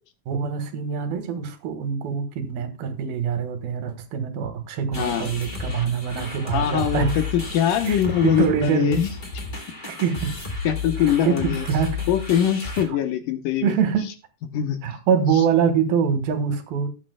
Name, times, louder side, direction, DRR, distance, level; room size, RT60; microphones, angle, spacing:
voice 1, 0.3-7.1 7.9-8.0 8.2-9.0 9.9-10.3 11.3-12.0 12.7-13.0 13.6-14.1 14.8-16.9, right 7 dB, 80° right, 8 dB, 3.2 m, -24 dB
sound 1, 4.9-12.8, left 4 dB, 45° left, 0.6 m, -32 dB
voice 2, 6.5-9.1 10.7-11.6 12.1-13.7 14.5-14.8, left 9 dB, 70° left, 8 dB, 2.4 m, -22 dB
18.5 x 8.7 x 2.2 m, 0.28 s
omnidirectional pair, 4.3 m